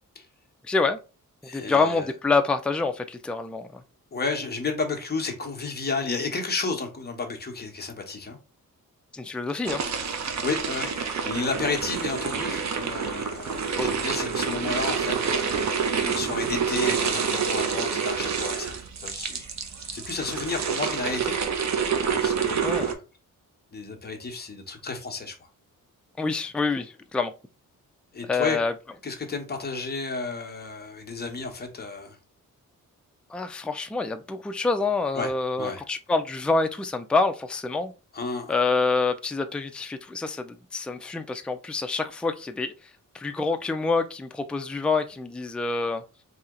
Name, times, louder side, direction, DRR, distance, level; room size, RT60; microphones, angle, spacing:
voice 1, 0.7-1.0 1.5-3.8 9.1-9.8 13.8-13.9 22.6-22.9 26.2-27.3 28.3-28.7 33.3-37.9 38.5-42.7 43.1-46.0, left 3 dB, 5° left, 0.3 m, -26 dB
voice 2, 1.4-2.1 4.1-8.4 10.0-19.5 19.8-21.7 22.1-23.0 23.7-25.5 28.1-28.6 29.0-32.2 35.1-35.3 35.6-35.8 38.1-38.5, left 4 dB, 30° left, 1.1 m, -32 dB
sound 1, 9.6-22.9, right 6 dB, 55° right, 0.8 m, -28 dB
4.3 x 2.8 x 3.7 m
wide cardioid pair, 130°, 34 cm